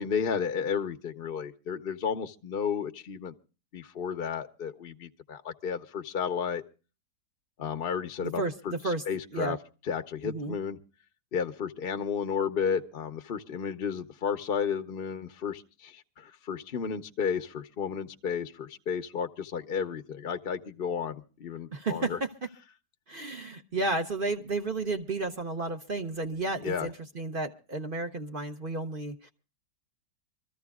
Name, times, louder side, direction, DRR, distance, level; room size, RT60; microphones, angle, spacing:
voice 1, 0.0-3.3 3.7-6.6 7.6-9.6 9.8-10.8 11.3-22.2 26.6-26.9, left 7 dB, 45° left, 0.8 m, -32 dB
voice 2, 8.2-8.5 8.8-9.0 9.3-9.6 10.2-10.6 21.7-22.3 23.1-29.3, right 2 dB, 40° right, 0.8 m, -32 dB
25.5 x 14.0 x 2.3 m
omnidirectional pair, 1.8 m